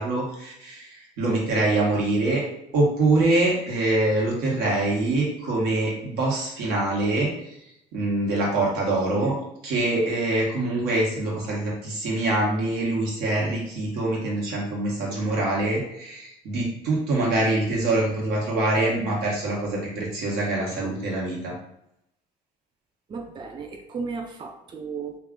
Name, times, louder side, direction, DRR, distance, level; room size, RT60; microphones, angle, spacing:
voice 1, 0.0-2.4 2.7-7.3 7.9-9.4 9.6-21.5, right 2 dB, 85° right, -3 dB, 1.1 m, -24 dB
voice 2, 23.1-25.2, right 5 dB, 30° right, 4 dB, 0.4 m, -34 dB
2.4 x 2.3 x 3.6 m, 0.81 s
cardioid pair, 110°, 17 cm